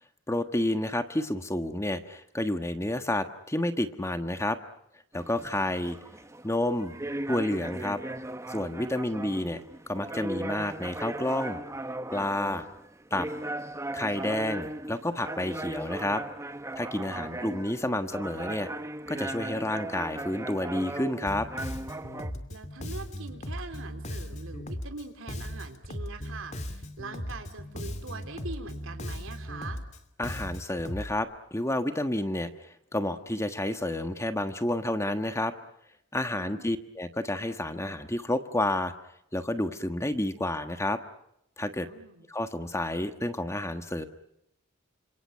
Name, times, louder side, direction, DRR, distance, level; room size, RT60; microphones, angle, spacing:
voice 1, 0.3-4.6 5.1-6.0 6.4-7.0 7.3-8.0 8.5-9.6 9.9-11.6 12.1-12.7 13.1-13.3 13.9-16.2 16.8-18.7 19.1-21.5 30.2-32.5 32.9-35.5 36.1-38.9 39.3-41.0 41.6-41.9 42.3-44.0, left 1 dB, 15° left, 8 dB, 1.4 m, -30 dB
sound 1, 5.1-22.3, right 1 dB, 15° right, 1.0 m, -38 dB
voice 2, 17.1-17.6 22.5-29.8 36.4-36.8 41.9-42.3, right 3 dB, 80° right, 6 dB, 3.7 m, -43 dB
Bass guitar, 21.3-31.1, equal, 35° left, 2.6 m, -38 dB
29.5 x 27.5 x 5.8 m, 0.79 s
head